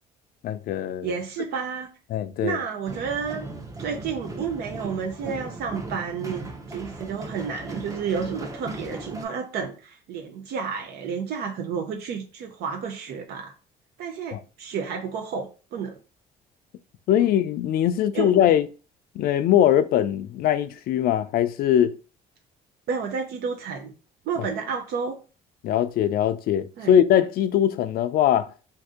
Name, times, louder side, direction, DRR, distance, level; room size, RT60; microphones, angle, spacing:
voice 1, 0.4-1.2 2.1-2.6 14.3-14.4 17.1-18.7 19.2-22.0 24.4-24.5 25.6-28.5, left 10 dB, 65° left, 0.4 m, -21 dB
voice 2, 1.0-1.9 2.4-3.5 3.8-13.5 14.0-16.0 17.2-17.3 18.1-18.4 22.9-23.9 24.3-25.2 26.8-26.9, right 6 dB, 70° right, 0.6 m, -31 dB
sound 1, 2.9-9.2, right 2 dB, 20° right, 0.7 m, -37 dB
2.7 x 2.6 x 3.6 m
cardioid pair, 110°, 17 cm